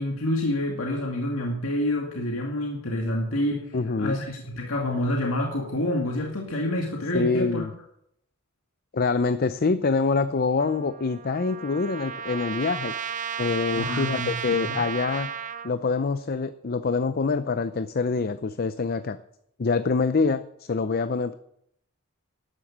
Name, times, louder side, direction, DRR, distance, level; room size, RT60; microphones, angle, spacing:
voice 1, 0.0-7.6 13.7-14.8, left 1 dB, 90° left, 1 dB, 2.2 m, -28 dB
voice 2, 3.7-4.2 7.1-7.7 8.9-12.9 13.4-15.3 15.6-19.2 19.6-21.3, left 4 dB, 45° left, 12 dB, 0.5 m, -25 dB
Trumpet, 10.6-15.7, right 8 dB, 40° right, 0.6 m, -34 dB
12.0 x 10.5 x 7.4 m, 0.75 s
head